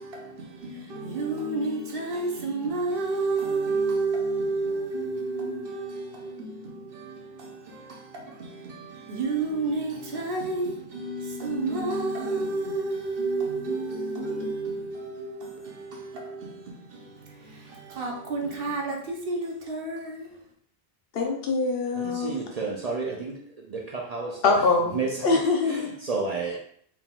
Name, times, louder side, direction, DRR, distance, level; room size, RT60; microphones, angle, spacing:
voice 1, 0.0-20.4, right 3 dB, 65° right, 1.0 m, -31 dB
voice 2, 21.1-22.4 24.4-25.9, left 4 dB, 70° left, 0.9 m, -24 dB
voice 3, 22.0-23.4 23.7-24.5 24.9-25.1 25.7-26.6, right 4 dB, 50° right, 0.5 m, -31 dB
4.4 x 3.7 x 2.3 m
omnidirectional pair, 1.0 m